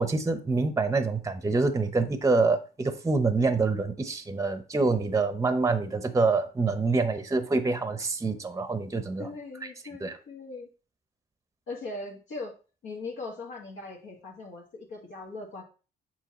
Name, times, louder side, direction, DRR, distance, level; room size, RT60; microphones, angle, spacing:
voice 1, 0.0-9.3 10.0-10.2, right 3 dB, 15° right, 0.7 m, -26 dB
voice 2, 9.2-10.7 11.7-12.5 12.8-15.6, left 3 dB, 75° left, 1.6 m, -40 dB
6.8 x 4.6 x 3.0 m
cardioid pair, 90°, 20 cm